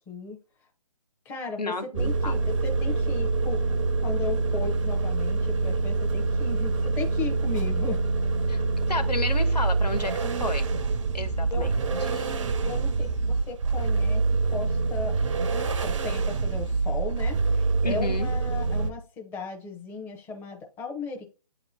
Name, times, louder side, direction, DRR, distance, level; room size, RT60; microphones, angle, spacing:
voice 1, 0.1-0.4 1.3-8.0 11.5-12.3 12.6-14.2 14.5-15.1 15.8-21.2, left 4 dB, 10° left, 2 dB, 0.7 m, -36 dB
voice 2, 1.6-2.4 8.5-8.6 8.9-10.7 11.1-11.7 17.8-18.3, left 3 dB, 85° left, 6 dB, 1.4 m, -32 dB
sound 1, 1.9-18.9, right 3 dB, 50° right, 0.6 m, -26 dB
8.6 x 2.9 x 4.1 m, 0.34 s
figure-of-eight pair, 145°, 20 cm